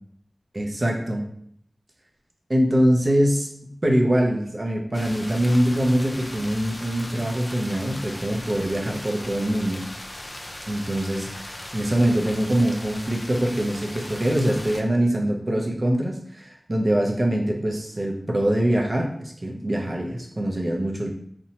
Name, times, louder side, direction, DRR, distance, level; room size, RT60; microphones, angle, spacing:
voice 1, 0.5-1.2 2.5-9.8 10.7-21.1, right 1 dB, 45° right, 1 dB, 0.5 m, -23 dB
sound 1, 4.9-14.8, left 1 dB, 35° left, 0.4 m, -38 dB
2.7 x 2.1 x 2.8 m, 0.67 s
cardioid pair, 45°, 0 cm